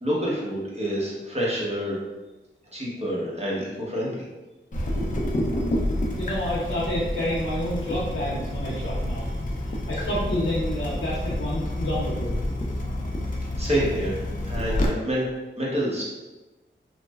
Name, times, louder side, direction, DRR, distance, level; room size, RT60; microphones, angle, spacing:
voice 1, 0.0-2.0 2.7-4.2 13.6-15.3 15.6-16.0, equal, 30° right, -5 dB, 0.9 m, -27 dB
Water tap faucet / Drip, 4.7-14.9, left 1 dB, 40° left, 0.4 m, -28 dB
voice 2, 6.2-9.3 9.9-12.3, left 1 dB, 85° left, -8 dB, 0.6 m, -29 dB
3.1 x 2.0 x 2.3 m, 1.1 s
wide cardioid pair, 70°, 21 cm